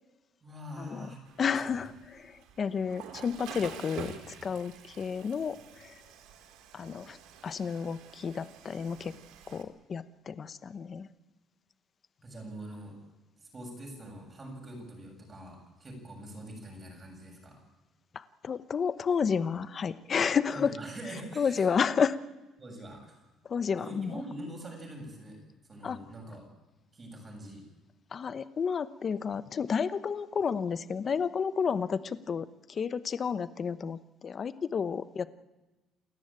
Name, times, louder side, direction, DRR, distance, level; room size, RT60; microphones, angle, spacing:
voice 1, 0.4-1.9 12.2-12.9 13.4-17.6 20.5-21.7 22.6-23.2 23.8-25.4 25.7-26.4 26.9-27.6, right 1 dB, 20° right, 1 dB, 7.4 m, -44 dB
Water / Toilet flush, 1.3-9.6, right 8 dB, 85° right, 3.0 m, -48 dB
voice 2, 1.4-5.9 6.7-7.2 7.4-9.1 9.5-11.1 18.1-20.7 21.4-22.2 23.5-24.1 25.8-26.0 28.1-35.3, left 6 dB, 30° left, 14 dB, 0.9 m, -31 dB
28.5 x 14.5 x 8.9 m, 1.1 s
cardioid pair, 155°, 0 cm